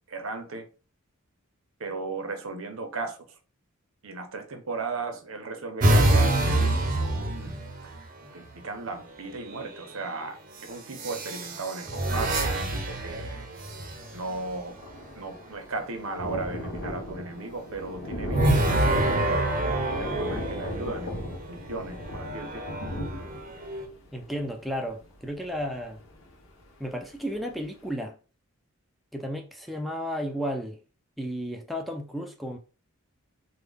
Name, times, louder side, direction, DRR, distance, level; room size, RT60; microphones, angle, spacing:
voice 1, 0.1-0.7 1.8-3.4 4.0-7.6 7.8-7.9 8.3-10.4 10.6-13.5 14.1-14.7 15.1-22.8, right 3 dB, 75° right, 0.7 m, -36 dB
sound 1, 5.8-8.1 9.3-9.8 10.9-14.3 18.3-21.2 22.0-23.8, right 1 dB, 40° right, 0.6 m, -26 dB
Thunder, 13.7-13.8 14.0-26.6 27.1-27.2 27.5-27.6, left 1 dB, 70° left, 0.9 m, -37 dB
voice 2, 24.1-26.0 26.8-28.2 29.1-30.8 31.2-32.6, equal, ahead, 0.4 m, -33 dB
3.5 x 2.1 x 3.4 m
head